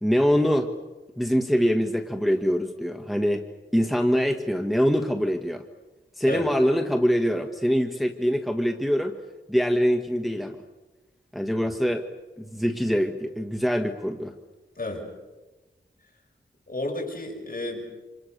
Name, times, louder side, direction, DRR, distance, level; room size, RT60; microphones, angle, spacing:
voice 1, 0.0-0.7 1.2-3.4 3.7-5.6 6.2-9.2 9.5-10.6 11.3-12.1 12.4-14.3, equal, ahead, 4 dB, 1.5 m, -24 dB
voice 2, 16.7-17.9, left 1 dB, 45° left, 0 dB, 7.2 m, -32 dB
28.5 x 27.0 x 6.8 m, 1.2 s
wide cardioid pair, 90°, 19 cm